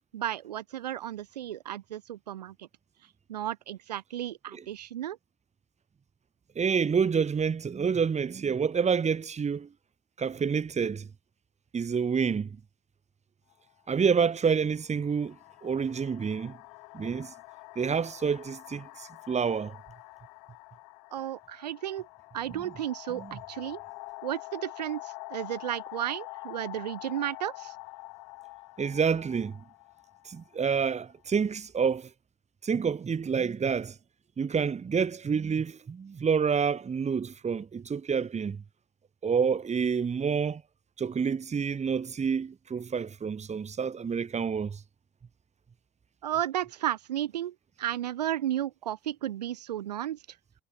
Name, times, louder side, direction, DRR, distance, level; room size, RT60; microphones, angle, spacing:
voice 1, 0.1-2.7 3.3-5.2 21.1-22.1 22.3-23.8 24.2-27.7 46.2-50.2, right 12 dB, 80° right, 2.4 m, -33 dB
voice 2, 6.6-9.7 10.2-11.1 11.7-12.6 13.9-15.4 15.6-16.6 16.9-17.3 17.8-19.8 23.1-23.3 28.8-29.6 30.3-32.1 32.6-34.0 34.4-38.6 39.2-40.6 41.0-44.8, right 6 dB, 35° right, 2.1 m, -28 dB
sound 1, 13.5-13.7 14.6-31.3, left 27 dB, 75° left, 7.4 m, -46 dB
figure-of-eight pair, 50°, 21 cm